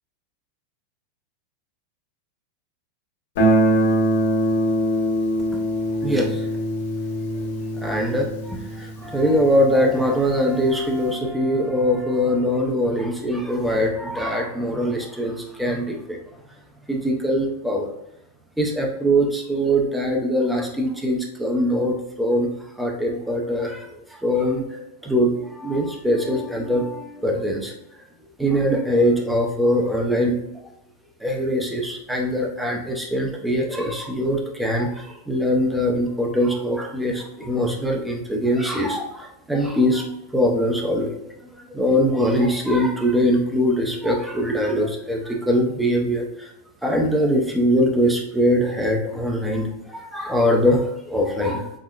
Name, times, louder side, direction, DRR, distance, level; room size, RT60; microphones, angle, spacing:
Guitar, 3.4-10.1, right 1 dB, 65° left, 1.2 m, -23 dB
voice 1, 6.0-6.5 7.8-16.2 16.9-17.9 18.6-22.5 22.8-27.7 28.4-30.4 31.2-40.1 40.3-41.2 41.6-46.5 46.8-51.7, equal, 5° right, 0 dB, 0.5 m, -22 dB
5.5 x 2.0 x 2.4 m, 0.82 s
supercardioid pair, 160°, 0 cm